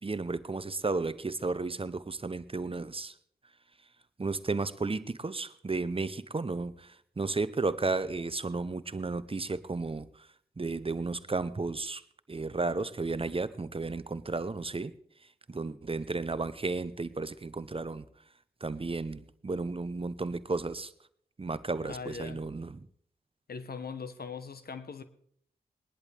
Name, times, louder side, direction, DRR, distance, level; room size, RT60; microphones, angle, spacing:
voice 1, 0.0-3.2 4.2-10.3 10.6-12.0 12.3-14.9 15.5-18.1 18.6-20.9 21.4-22.9, right 3 dB, 35° right, 0.8 m, -33 dB
voice 2, 21.8-22.4 23.5-25.0, left 5 dB, 70° left, 1.1 m, -40 dB
21.0 x 11.0 x 3.4 m
cardioid pair, 40°, 16 cm